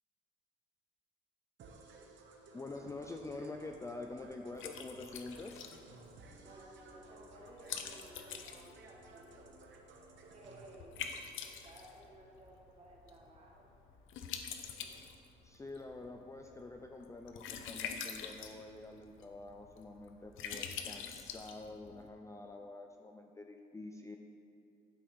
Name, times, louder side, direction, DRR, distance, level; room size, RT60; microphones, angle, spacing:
sound 1, 1.6-10.8, right 3 dB, 70° right, 1.0 m, -57 dB
voice 1, 2.5-5.6 11.5-11.6 15.4-24.2, left 2 dB, 15° left, 3 dB, 0.4 m, -47 dB
Liquid, 2.7-22.1, left 7 dB, 85° left, 0.7 m, -47 dB
voice 2, 6.4-9.4 9.7-10.0 10.3-11.0 11.4-13.7, right 1 dB, 30° right, -3 dB, 2.0 m, -57 dB
11.5 x 5.3 x 4.0 m, 2.7 s
cardioid pair, 90°, 20 cm